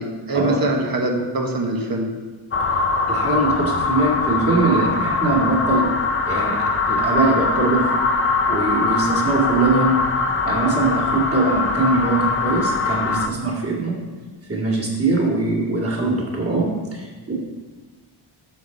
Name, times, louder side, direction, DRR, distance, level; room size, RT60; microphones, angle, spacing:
voice 1, 0.0-2.1, right 1 dB, 45° right, 2 dB, 1.4 m, -23 dB
sound 1, 2.5-13.3, left 3 dB, 25° left, 0.6 m, -22 dB
voice 2, 3.1-5.9 6.3-7.9 8.5-10.0 10.4-14.0 14.5-17.4, right 2 dB, 30° right, -2 dB, 2.3 m, -21 dB
12.0 x 6.6 x 4.0 m, 1.4 s
wide cardioid pair, 150°, 48 cm